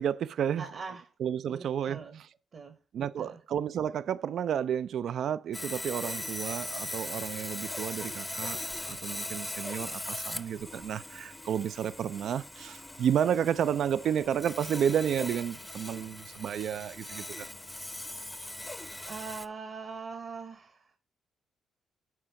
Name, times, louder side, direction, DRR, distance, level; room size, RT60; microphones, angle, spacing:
voice 1, 0.0-0.6 1.2-2.0 2.9-17.5, right 9 dB, 65° right, 0.3 m, -31 dB
voice 2, 0.6-1.1 1.5-2.2 2.5-3.4 19.1-21.0, right 5 dB, 45° right, 1.0 m, -42 dB
Sawing, 5.5-19.5, left 1 dB, 10° left, 0.6 m, -40 dB
9.2 x 3.8 x 5.7 m
cardioid pair, 90°, 0 cm